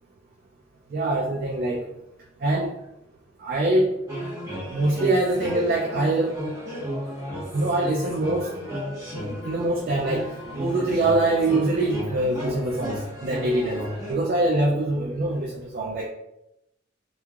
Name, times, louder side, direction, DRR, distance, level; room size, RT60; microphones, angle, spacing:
voice 1, 0.9-1.8 2.4-2.7 3.4-3.9 4.7-6.3 7.5-8.5 9.4-10.3 10.6-13.8 14.1-16.1, right 2 dB, 50° right, -1 dB, 0.3 m, -24 dB
sound 1, 4.1-14.1, equal, 15° right, 1.0 m, -33 dB
3.1 x 2.2 x 2.3 m, 0.83 s
head